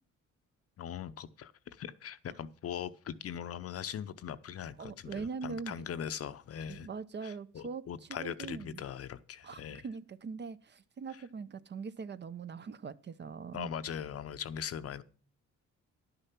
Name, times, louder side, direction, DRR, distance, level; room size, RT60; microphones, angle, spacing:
voice 1, 0.8-6.9 7.2-9.8 13.5-15.0, left 8 dB, 50° left, 0.7 m, -40 dB
voice 2, 4.8-5.8 6.7-7.9 8.2-8.8 9.4-13.7, right 5 dB, 35° right, 0.6 m, -42 dB
11.5 x 6.7 x 5.9 m
cardioid pair, 90°, 30 cm